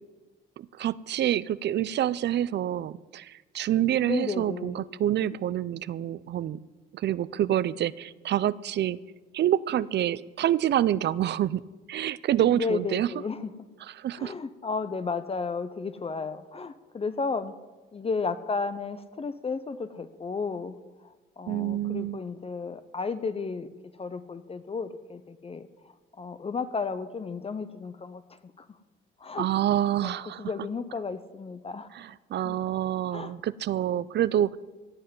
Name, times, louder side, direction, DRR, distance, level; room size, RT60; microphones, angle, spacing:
voice 1, 0.6-6.6 6.9-9.0 9.3-11.6 11.9-13.1 13.8-14.3 21.5-22.2 29.4-30.5 31.9-34.6, right 11 dB, 60° right, 19 dB, 0.5 m, -27 dB
voice 2, 4.1-4.8 12.6-13.5 14.2-17.5 17.9-20.7 21.4-23.7 24.0-25.7 26.2-28.2 29.2-29.5 30.0-31.9 32.4-32.6 33.1-33.3, left 4 dB, 30° left, 12 dB, 0.7 m, -33 dB
16.5 x 5.6 x 9.3 m, 1.2 s
cardioid pair, 90°, 20 cm